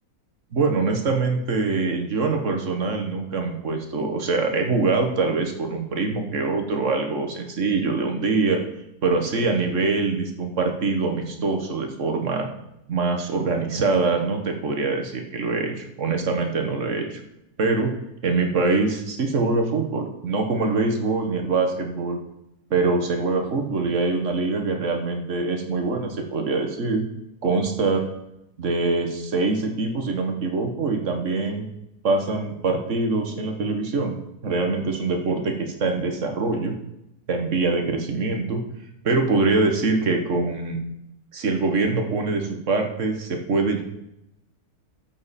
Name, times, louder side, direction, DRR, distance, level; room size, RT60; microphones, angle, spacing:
voice 1, 0.5-8.6 9.0-12.5 12.9-17.2 17.6-17.9 18.2-22.2 22.7-27.0 27.4-28.0 28.6-31.7 32.0-34.1 34.4-36.7 37.3-38.6 39.0-40.8 41.3-43.8, right 3 dB, 50° right, 3 dB, 1.5 m, -24 dB
12.0 x 7.4 x 4.2 m, 0.85 s
omnidirectional pair, 1.7 m